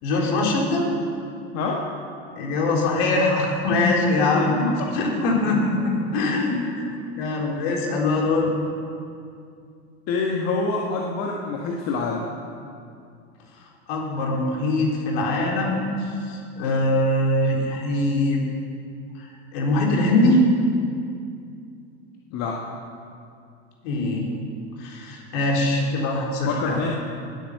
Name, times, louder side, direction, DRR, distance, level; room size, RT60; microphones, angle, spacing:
voice 1, 0.0-0.9 2.4-4.7 4.9-6.6 7.2-8.5 13.9-15.9 16.3-18.4 19.2-20.4 23.8-24.3 24.8-26.8, left 2 dB, 65° left, -1 dB, 4.0 m, -22 dB
voice 2, 1.5-1.9 4.2-4.9 8.1-8.2 10.1-12.3 22.3-22.6 26.4-26.9, left 4 dB, 50° left, -1 dB, 1.8 m, -26 dB
19.5 x 9.2 x 6.8 m, 2.4 s
hypercardioid pair, 90°, 33 cm